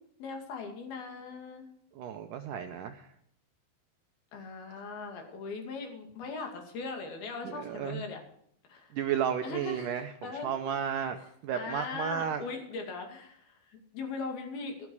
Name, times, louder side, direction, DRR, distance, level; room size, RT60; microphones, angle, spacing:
voice 1, 0.2-1.6 4.3-8.2 8.7-8.9 9.4-9.9 10.2-10.7 11.5-14.9, left 4 dB, 70° left, 3 dB, 4.3 m, -39 dB
voice 2, 2.0-3.1 7.4-8.0 8.9-11.2 11.4-12.4, right 8 dB, 80° right, 6 dB, 2.0 m, -33 dB
13.5 x 13.0 x 4.7 m, 0.70 s
omnidirectional pair, 4.5 m